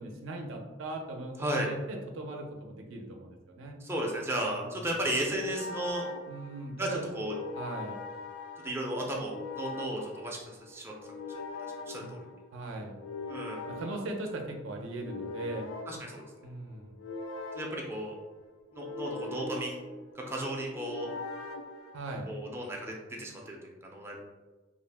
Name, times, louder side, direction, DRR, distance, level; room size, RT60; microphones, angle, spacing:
voice 1, 0.0-3.8 4.6-4.8 6.3-7.1 7.6-8.0 8.7-8.8 12.0-12.1 12.5-13.0 13.7-15.7 16.4-17.0 21.9-22.3, right 2 dB, 80° right, 2 dB, 0.5 m, -39 dB
voice 2, 1.4-1.7 3.8-6.1 6.8-7.3 8.6-10.9 11.3-11.4 11.9-12.3 13.3-13.7 15.9-16.2 17.5-18.2 18.7-19.8 20.2-21.1 22.3-24.2, right 1 dB, 15° right, -2 dB, 0.4 m, -34 dB
sound 1, 4.1-22.5, left 3 dB, 75° left, 0.3 m, -43 dB
2.4 x 2.0 x 3.3 m, 1.2 s
head